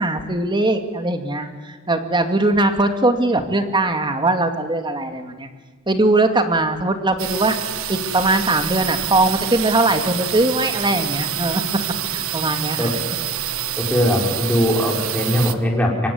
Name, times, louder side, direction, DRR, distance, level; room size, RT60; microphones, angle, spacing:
voice 1, 0.0-5.5 5.9-7.6 7.9-11.6 12.1-12.9, right 2 dB, 25° right, 6 dB, 2.4 m, -20 dB
sound 1, 7.2-15.5, right 10 dB, 80° right, 1.4 m, -27 dB
voice 2, 13.8-16.1, equal, 5° left, -1 dB, 5.0 m, -20 dB
25.5 x 24.0 x 9.6 m, 1.4 s
head